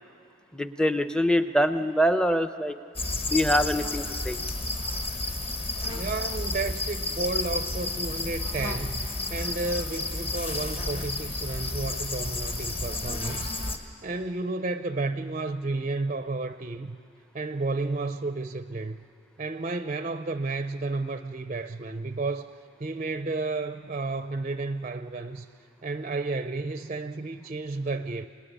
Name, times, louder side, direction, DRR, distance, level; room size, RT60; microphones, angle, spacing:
voice 1, 0.5-2.7 3.3-4.4, equal, 5° left, 10 dB, 0.7 m, -24 dB
sound 1, 2.9-13.8, left 2 dB, 30° left, 1.4 m, -31 dB
voice 2, 5.8-9.0 9.3-17.0 17.3-19.0 19.4-22.5 22.8-25.5 25.8-28.3, right 3 dB, 35° right, 9 dB, 0.5 m, -32 dB
27.0 x 20.5 x 9.9 m, 2.5 s
head